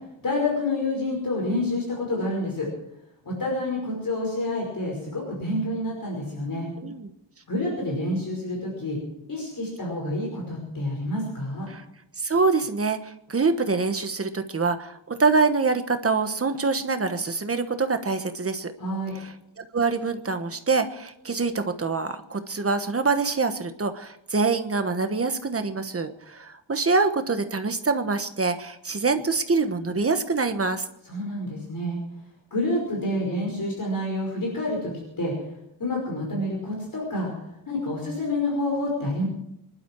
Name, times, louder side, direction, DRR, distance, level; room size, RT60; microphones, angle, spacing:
voice 1, 0.2-2.7 3.2-6.7 7.5-9.0 9.3-11.7 18.8-19.1 31.1-32.0 32.5-34.9 35.2-35.3 35.8-37.3 37.7-39.2, left 1 dB, 45° left, -1 dB, 5.4 m, -28 dB
voice 2, 12.2-18.7 19.1-30.8, right 4 dB, 30° right, 8 dB, 1.3 m, -25 dB
25.5 x 12.0 x 4.7 m, 0.82 s
wide cardioid pair, 155°, 46 cm